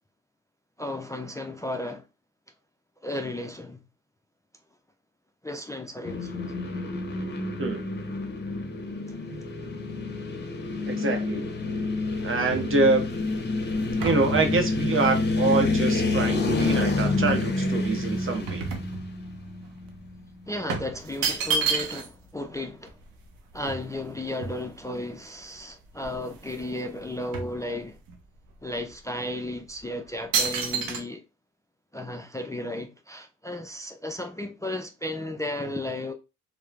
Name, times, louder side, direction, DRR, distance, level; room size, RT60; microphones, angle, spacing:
voice 1, 0.8-2.0 3.0-3.8 5.4-6.4 9.1-9.2 20.5-23.0 23.5-28.0 28.6-31.2 31.9-36.1, left 1 dB, 10° left, 0.3 m, -34 dB
sound 1, 6.0-20.2, left 3 dB, 30° left, 0.8 m, -28 dB
voice 2, 10.8-11.4 12.2-13.0 14.0-18.7, right 3 dB, 40° right, 0.8 m, -25 dB
sound 2, 11.7-16.9 17.3-19.5 19.8-20.0 20.7-22.3 22.6-22.7 22.9-25.0 25.6-25.7 25.9-26.7 27.0-28.2 28.8-28.9 29.5-29.8 30.3-31.0, right 5 dB, 85° right, 0.6 m, -32 dB
3.0 x 2.1 x 2.3 m
supercardioid pair, 55°, 33 cm